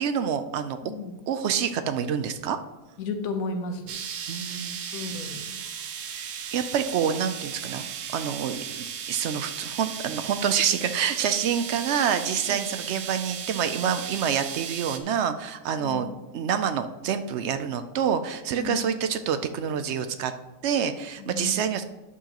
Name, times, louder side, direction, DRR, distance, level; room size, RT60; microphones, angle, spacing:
voice 1, 0.0-0.8 1.3-2.6 4.3-5.1 6.5-20.3 20.6-21.8, right 8 dB, 70° right, 10 dB, 0.6 m, -27 dB
voice 2, 0.8-1.2 3.0-3.9 4.9-5.5 12.5-12.7 15.8-16.1 18.6-18.8 21.2-21.6, left 3 dB, 65° left, 5 dB, 1.3 m, -33 dB
sound 1, 3.9-15.0, right 8 dB, 85° right, 1.3 m, -36 dB
11.0 x 7.2 x 2.9 m, 1.1 s
omnidirectional pair, 1.7 m